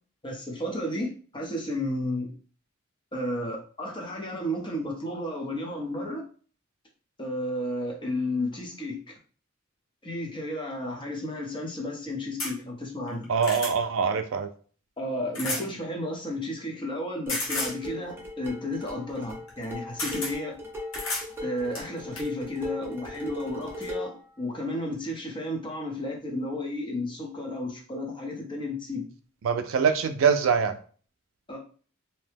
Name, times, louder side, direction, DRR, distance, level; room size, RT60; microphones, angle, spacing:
voice 1, 0.2-2.3 3.1-6.2 7.2-9.0 10.0-13.3 15.0-20.6 21.4-29.1 31.5-31.6, left 1 dB, 25° left, 0 dB, 0.8 m, -32 dB
sound 1, 12.4-12.5 13.1-13.7 15.3-15.7 17.3-17.8 19.5-19.6 20.0-20.3 20.9-21.3 21.7-22.3 23.3-23.4 23.8-23.9, left 2 dB, 80° left, 1.1 m, -32 dB
voice 2, 13.3-14.5 29.4-30.7, right 6 dB, 70° right, 8 dB, 0.4 m, -23 dB
sound 2, 17.3-24.2, left 1 dB, 10° right, 0.8 m, -38 dB
2.8 x 2.1 x 3.3 m, 0.41 s
head